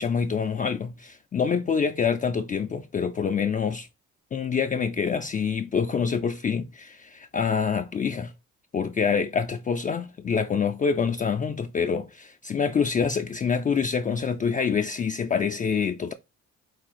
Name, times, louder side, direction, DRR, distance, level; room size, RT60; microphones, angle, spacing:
voice 1, 0.0-3.9 4.3-8.3 8.7-16.1, left 6 dB, 25° left, 0.4 m, -26 dB
4.7 x 2.3 x 4.1 m
cardioid pair, 90°, 30 cm